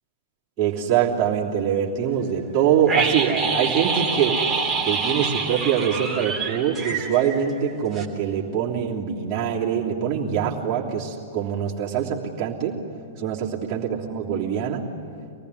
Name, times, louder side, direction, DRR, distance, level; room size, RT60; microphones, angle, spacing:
voice 1, 0.6-4.4 4.8-12.8 13.2-14.8, right 8 dB, 30° right, -6 dB, 3.2 m, -24 dB
sound 1, 2.9-7.7 7.9-8.1, right 4 dB, 5° right, 3.2 m, -26 dB
25.0 x 19.5 x 9.8 m, 2.6 s
figure-of-eight pair, 105°, 0 cm